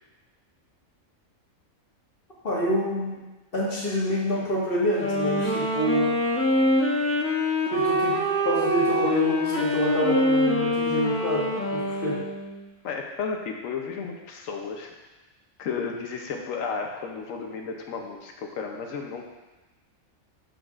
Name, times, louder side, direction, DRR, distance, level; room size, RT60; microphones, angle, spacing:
voice 1, 2.4-3.2 3.5-6.1 7.7-12.2, equal, 45° left, -5 dB, 1.7 m, -27 dB
Wind instrument woodwind instrument, 4.9-12.6, left 1 dB, 15° left, 0.6 m, -25 dB
voice 2, 12.8-14.9 15.6-19.3, left 5 dB, 85° left, 2 dB, 1.1 m, -33 dB
7.7 x 7.0 x 2.4 m, 1.1 s
omnidirectional pair, 1.4 m